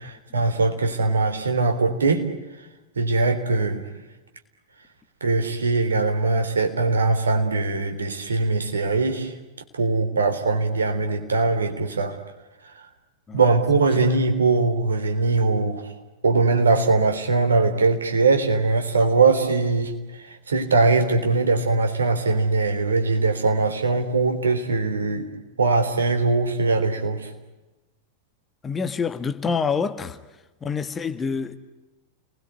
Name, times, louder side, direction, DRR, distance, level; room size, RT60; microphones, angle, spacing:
voice 1, 0.0-2.3 3.0-3.8 5.2-9.3 9.7-12.2 13.3-15.9 16.2-25.3 25.6-27.3, right 3 dB, 70° right, 3.6 m, -21 dB
voice 2, 28.6-30.2 30.6-31.6, left 5 dB, 20° left, 1.7 m, -27 dB
29.5 x 21.0 x 9.4 m
figure-of-eight pair, 90°, 0 cm